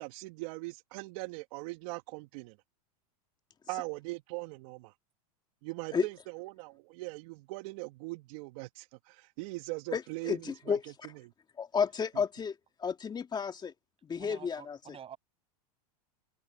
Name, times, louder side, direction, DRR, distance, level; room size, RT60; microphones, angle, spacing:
voice 1, 0.0-2.6 3.7-4.9 5.6-10.9 11.2-11.3, right 24 dB, 60° right, 1.9 m, -41 dB
voice 2, 9.9-10.8 11.6-12.5 12.8-13.7 14.1-14.8, left 6 dB, 20° left, 2.3 m, -32 dB
voice 3, 14.2-15.2, right 9 dB, 30° right, 7.2 m, -48 dB
hypercardioid pair, 105°, 20 cm